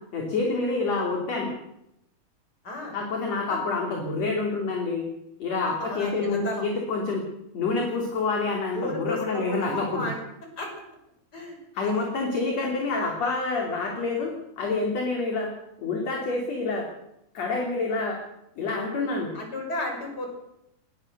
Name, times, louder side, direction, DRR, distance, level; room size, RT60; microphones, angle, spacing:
voice 1, 0.1-1.5 2.9-5.1 5.4-7.2 7.5-10.1 11.7-15.5 15.8-16.9 17.3-18.2 18.6-19.4, left 3 dB, 45° left, 1 dB, 3.9 m, -27 dB
voice 2, 2.6-3.0 5.8-6.7 8.7-10.2 10.6-10.7 11.3-12.1 12.6-12.7 19.3-20.3, left 2 dB, 25° left, 2 dB, 6.5 m, -33 dB
20.0 x 20.0 x 6.7 m, 0.82 s
omnidirectional pair, 4.3 m